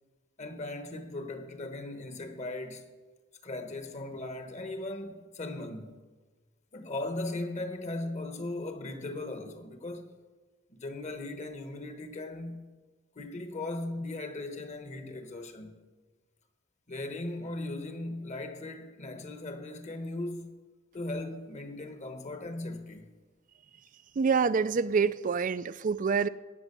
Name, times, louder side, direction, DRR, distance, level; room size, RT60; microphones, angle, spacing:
voice 1, 0.4-2.9 3.4-6.0 6.7-10.1 10.7-12.7 13.1-15.7 16.9-20.6 20.9-23.1, left 2 dB, 35° left, 1.2 m, -38 dB
voice 2, 24.2-26.3, right 5 dB, 40° right, 0.4 m, -26 dB
17.5 x 6.2 x 6.8 m
head